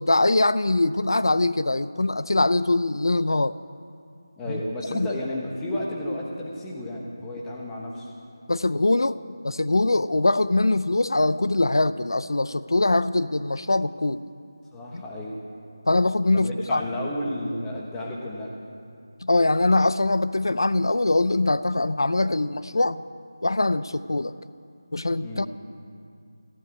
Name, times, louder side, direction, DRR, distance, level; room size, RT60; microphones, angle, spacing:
voice 1, 0.0-3.6 4.5-4.6 4.9-5.1 8.5-9.2 9.4-14.2 14.9-15.0 15.9-16.8 19.2-23.0 23.4-24.3 24.9-25.5, left 2 dB, 90° left, 15 dB, 0.5 m, -22 dB
voice 2, 4.4-8.1 14.7-15.4 16.3-18.5 25.2-25.5, left 1 dB, 5° left, -3 dB, 1.1 m, -32 dB
15.5 x 11.5 x 8.2 m, 2.4 s
figure-of-eight pair, 175°, 2 cm